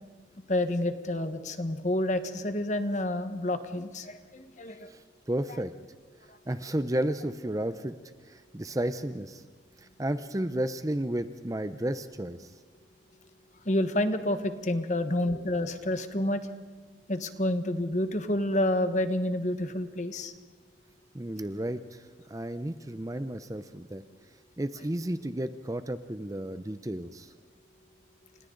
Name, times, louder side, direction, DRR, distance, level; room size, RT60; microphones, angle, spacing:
voice 1, 0.5-4.9 6.3-6.4 13.6-16.5 17.1-20.3, left 1 dB, 40° left, 9 dB, 1.3 m, -29 dB
voice 2, 4.9-5.7 6.5-7.9 8.2-9.4 9.8-12.6 21.1-24.0 24.6-27.3, right 1 dB, 20° right, 11 dB, 0.6 m, -33 dB
29.5 x 27.5 x 3.9 m, 1.3 s
head